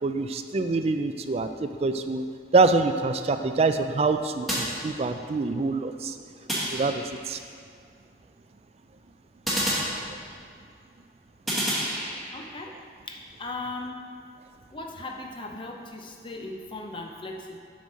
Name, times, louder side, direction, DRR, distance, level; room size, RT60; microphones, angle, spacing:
voice 1, 0.0-2.2 2.5-6.2 6.7-7.4, right 3 dB, 35° right, 8 dB, 0.3 m, -25 dB
sound 1, 4.5-5.4 6.5-7.4 9.5-10.6 11.5-12.5, equal, ahead, 1.5 m, -30 dB
voice 2, 12.3-12.7 13.1-14.1 14.7-17.6, left 2 dB, 30° left, 2 dB, 0.6 m, -38 dB
7.0 x 6.5 x 4.1 m, 2.2 s
head